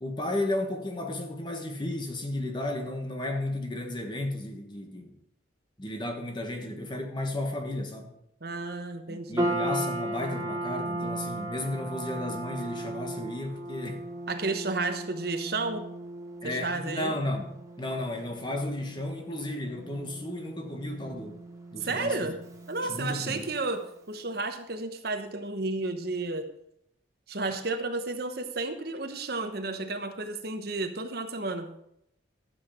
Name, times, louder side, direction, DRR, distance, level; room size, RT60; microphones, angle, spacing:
voice 1, 0.0-5.2 5.8-8.1 9.1-14.1 16.4-17.5 17.8-21.4 21.7-22.3 22.8-23.4, left 1 dB, 25° left, 1.4 m, -33 dB
voice 2, 8.4-9.6 14.3-15.9 16.4-17.1 21.8-22.3 22.7-26.5 27.3-31.7, right 3 dB, 55° right, 1.0 m, -32 dB
sound 1, 9.4-23.8, right 1 dB, 15° right, 1.2 m, -37 dB
12.5 x 8.1 x 5.0 m
head